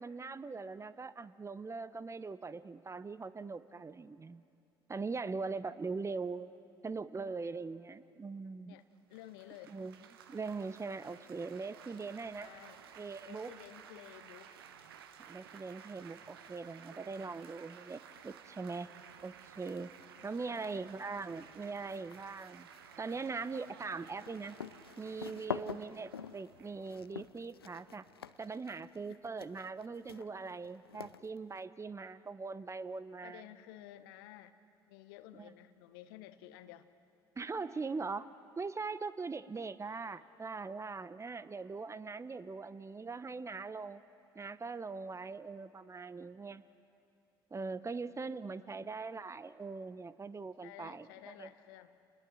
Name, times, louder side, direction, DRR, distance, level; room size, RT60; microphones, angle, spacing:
voice 1, 0.0-4.4 4.9-6.5 6.8-8.8 9.7-9.9 10.3-12.5 13.0-13.5 15.3-18.9 19.2-19.9 20.2-22.7 23.0-24.6 25.0-28.0 28.4-33.4 35.3-35.5 37.4-38.3 38.6-44.0 44.3-46.6 47.5-51.5, right 4 dB, 25° right, 15 dB, 0.9 m, -41 dB
voice 2, 9.1-9.7 12.4-12.8 13.2-14.5 20.4-20.9 29.1-29.2 33.2-34.5 34.9-36.9 48.5-48.7 50.6-52.0, left 13 dB, 70° left, 12 dB, 1.0 m, -53 dB
Laughter / Applause / Chatter, 9.1-28.2, right 8 dB, 80° right, 1.0 m, -56 dB
sound 1, 19.6-20.1 20.4-31.6, left 8 dB, 90° left, 0.5 m, -47 dB
29.5 x 20.5 x 6.3 m, 2.6 s
figure-of-eight pair, 55°, 12 cm